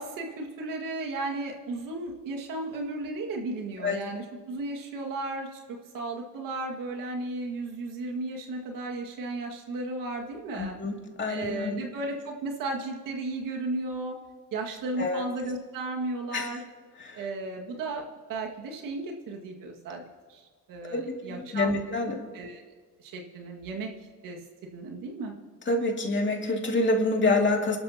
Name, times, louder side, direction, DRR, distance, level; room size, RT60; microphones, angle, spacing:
voice 1, 0.0-10.8 11.3-14.2 14.5-16.6 17.1-18.0 18.3-20.0 20.3-21.8 22.3-22.6 23.0-23.9 24.2-25.3, right 2 dB, 85° right, 1 dB, 2.0 m, -34 dB
voice 2, 10.6-11.8 15.0-15.3 16.3-16.5 20.9-22.2 25.7-27.8, left 2 dB, 35° left, 0 dB, 2.5 m, -27 dB
28.5 x 12.5 x 2.9 m, 1.5 s
cardioid pair, 90°, 33 cm